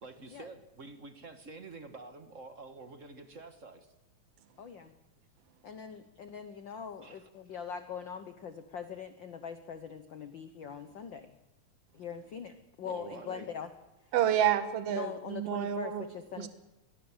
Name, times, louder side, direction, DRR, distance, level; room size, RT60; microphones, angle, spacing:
voice 1, 0.0-3.9 7.0-7.3 12.8-13.5, right 3 dB, 35° right, 8 dB, 1.3 m, -48 dB
voice 2, 4.6-4.9 5.6-11.4 11.9-13.7 14.9-16.5, left 7 dB, 60° left, 9 dB, 1.2 m, -42 dB
voice 3, 14.1-16.0 16.4-16.5, right 10 dB, 60° right, 10 dB, 2.3 m, -29 dB
25.0 x 20.5 x 7.3 m, 1.0 s
omnidirectional pair, 3.3 m